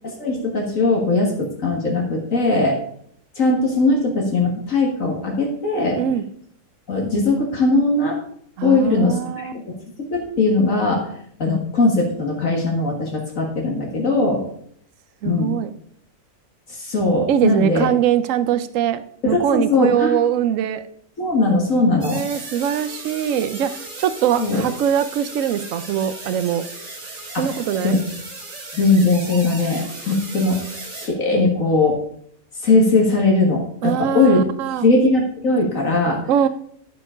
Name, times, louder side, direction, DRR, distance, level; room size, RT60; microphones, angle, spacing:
voice 1, 0.2-2.8 3.4-6.0 6.9-8.2 8.6-9.8 10.1-11.0 11.4-14.4 15.2-15.5 16.7-17.9 19.2-20.2 21.2-22.2 24.4-24.6 27.3-27.5 27.8-28.0 28.7-30.6 31.0-32.0 32.6-34.4 34.8-36.2, left 3 dB, 60° left, -1 dB, 2.0 m, -19 dB
voice 2, 8.6-9.5 15.2-15.7 17.3-20.8 22.1-26.6 27.4-28.0 33.8-34.9 36.3-36.5, right 9 dB, 65° right, 12 dB, 1.0 m, -22 dB
sound 1, 22.0-31.1, right 2 dB, 50° right, 2.2 m, -36 dB
13.5 x 4.8 x 5.0 m, 0.66 s
omnidirectional pair, 1.6 m